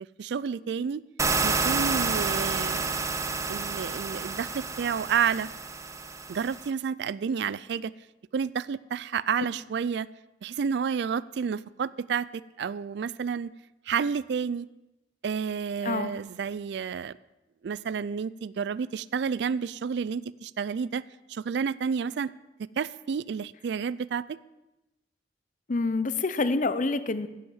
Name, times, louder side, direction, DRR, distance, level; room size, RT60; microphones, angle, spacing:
voice 1, 0.2-1.0 1.4-3.2 3.5-5.5 6.3-7.9 8.3-10.1 10.4-13.5 13.9-14.7 15.2-17.1 17.6-21.0 21.3-22.3 22.8-24.4, right 6 dB, 65° right, 19 dB, 0.4 m, -30 dB
sound 1, 1.2-6.7, right 4 dB, 15° right, 0.6 m, -29 dB
voice 2, 25.7-27.3, left 3 dB, 45° left, 13 dB, 0.7 m, -27 dB
15.0 x 6.3 x 7.2 m, 1.0 s
head